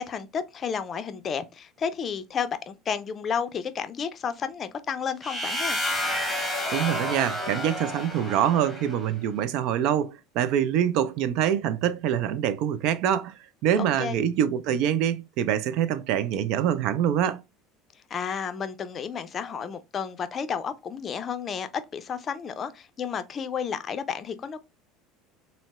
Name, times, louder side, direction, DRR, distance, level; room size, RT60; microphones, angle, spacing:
voice 1, 0.0-5.8 13.8-14.2 18.1-24.6, left 7 dB, 40° left, 0.4 m, -32 dB
sound 1, 5.2-9.1, left 1 dB, ahead, 1.2 m, -30 dB
voice 2, 6.7-13.3 13.6-17.4, right 10 dB, 65° right, 0.3 m, -25 dB
3.8 x 2.0 x 2.2 m
hypercardioid pair, 80°, 0 cm